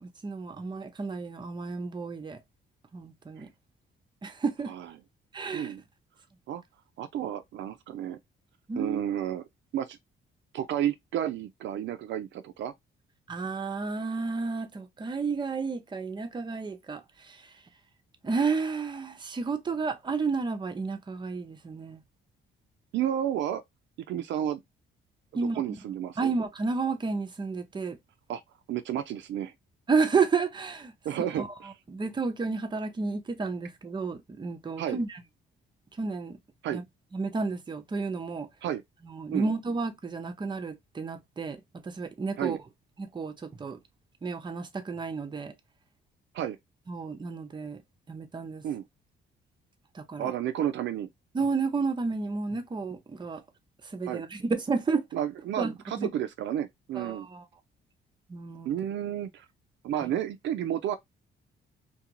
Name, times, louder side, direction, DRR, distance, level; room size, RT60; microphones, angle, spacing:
voice 1, 0.0-2.4 2.9-3.5 4.2-4.7 5.3-5.7 8.7-9.0 13.3-17.0 18.2-22.0 25.3-25.6 26.2-28.0 29.9-30.9 31.4-31.5 31.9-35.1 36.0-36.4 36.7-36.8 37.1-38.5 39.1-41.6 41.9-42.6 43.0-43.8 44.2-45.5 46.9-47.8 48.1-48.6 50.0-50.3 51.3-53.4 53.9-55.0 55.6-56.1 57.0-57.4 58.3-58.7 60.0-60.1, right 4 dB, 25° right, 0.6 m, -31 dB
voice 2, 7.0-8.2 8.8-9.4 9.7-10.0 10.5-12.7 22.9-23.6 24.1-24.6 25.3-26.3 28.3-28.4 28.7-29.5 31.0-31.7 34.8-35.0 36.6-36.8 38.6-38.8 39.3-39.5 42.4-42.6 46.3-46.6 48.6-48.8 50.2-51.1 54.1-54.2 55.1-57.3 58.7-59.5 59.8-61.0, right 10 dB, 65° right, 0.4 m, -31 dB
2.4 x 2.3 x 2.8 m
cardioid pair, 90°, 20 cm